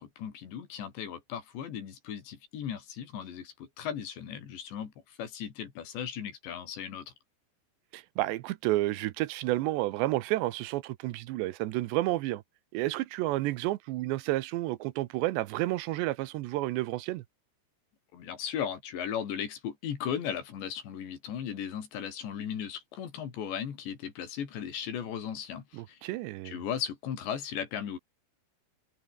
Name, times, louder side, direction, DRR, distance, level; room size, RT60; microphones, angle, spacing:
voice 1, 0.0-7.1 18.1-26.0 26.5-28.0, left 8 dB, 75° left, 5.5 m, -37 dB
voice 2, 7.9-12.4 12.7-17.2 25.7-26.5, right 17 dB, 80° right, 3.0 m, -31 dB
omnidirectional pair, 5.1 m